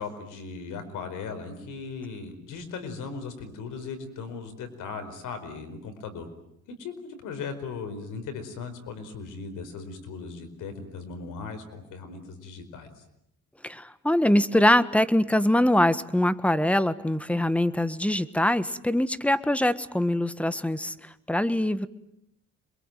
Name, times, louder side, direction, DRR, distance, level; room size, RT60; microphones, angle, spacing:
voice 1, 0.0-6.3 6.8-12.9, left 5 dB, 90° left, 9 dB, 4.9 m, -38 dB
voice 2, 13.6-20.9 21.3-21.9, left 1 dB, 5° left, 14 dB, 1.5 m, -23 dB
27.0 x 22.5 x 9.2 m, 0.79 s
cardioid pair, 90°, 30 cm